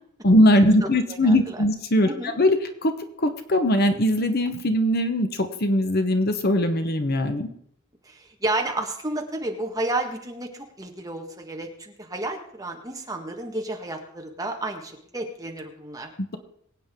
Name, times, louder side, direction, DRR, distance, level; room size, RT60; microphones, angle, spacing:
voice 1, 0.2-2.1 2.4-2.6 2.8-2.9 3.2-7.5 16.2-16.4, left 1 dB, 45° left, 8 dB, 1.0 m, -20 dB
voice 2, 0.8-1.6 2.0-2.3 8.0-16.4, right 2 dB, 15° right, 2 dB, 1.6 m, -31 dB
23.5 x 8.7 x 3.7 m, 0.71 s
head